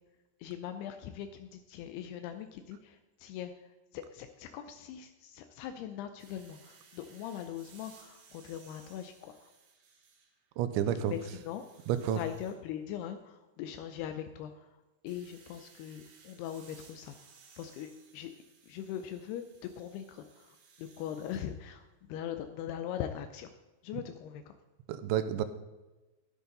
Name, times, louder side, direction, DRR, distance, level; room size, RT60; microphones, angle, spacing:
voice 1, 0.4-9.5 11.0-11.6 12.1-18.3 18.6-23.5 23.8-24.5, left 10 dB, 85° left, 8 dB, 2.3 m, -41 dB
sound 1, 6.2-10.5 10.9-12.6 15.1-21.4, right 5 dB, 65° right, 3.4 m, -60 dB
voice 2, 10.6-11.1 11.9-12.2 24.9-25.4, right 10 dB, 85° right, 11 dB, 2.9 m, -30 dB
13.0 x 11.0 x 4.0 m, 1.1 s
omnidirectional pair, 5.4 m